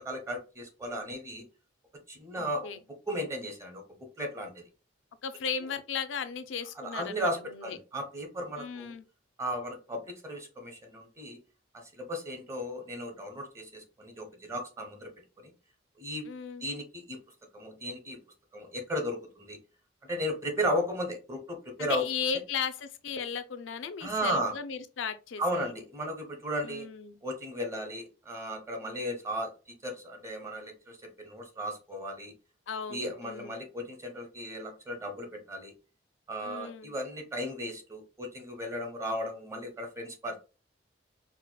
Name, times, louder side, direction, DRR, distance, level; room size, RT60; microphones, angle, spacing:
voice 1, 0.0-1.4 2.1-3.8 4.2-4.6 6.8-8.9 9.4-11.4 11.9-15.1 15.4-15.5 16.0-16.2 16.6-17.2 17.5-18.2 18.5-19.6 20.1-22.0 24.0-24.5 25.4-26.9 27.2-32.3 32.9-35.7 36.3-40.4, equal, 15° right, 0.8 m, -35 dB
voice 2, 2.4-2.8 5.2-7.8 8.6-9.1 16.2-16.7 21.8-25.7 26.6-27.2 32.7-33.6 36.4-37.0, left 6 dB, 85° left, 0.4 m, -36 dB
4.6 x 2.1 x 2.2 m
head